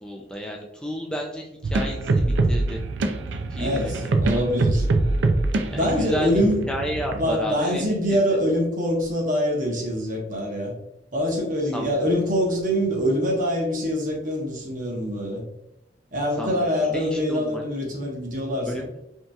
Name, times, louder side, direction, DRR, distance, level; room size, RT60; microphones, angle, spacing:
voice 1, 0.0-2.8 3.5-4.3 5.7-6.4 6.7-7.8 11.7-12.1 16.4-17.6 18.7-18.9, equal, 5° left, 0 dB, 0.3 m, -32 dB
sound 1, 1.6-7.3, right 2 dB, 80° right, 0.5 m, -24 dB
voice 2, 3.6-4.9 5.7-6.6 7.1-10.7 11.1-15.4 16.1-18.9, equal, 45° right, 0 dB, 1.0 m, -24 dB
5.4 x 2.9 x 2.3 m, 0.85 s
head